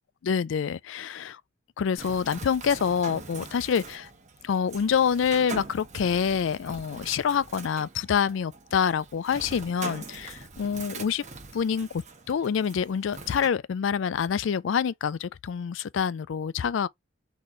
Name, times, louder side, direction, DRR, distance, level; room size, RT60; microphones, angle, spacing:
voice 1, 0.2-1.4 1.8-4.1 4.4-11.2 11.5-12.0 12.3-16.9, left 7 dB, 65° left, 0.4 m, -26 dB
Bird, 2.0-13.5, right 4 dB, 35° right, 1.1 m, -43 dB
4.1 x 3.3 x 3.8 m
head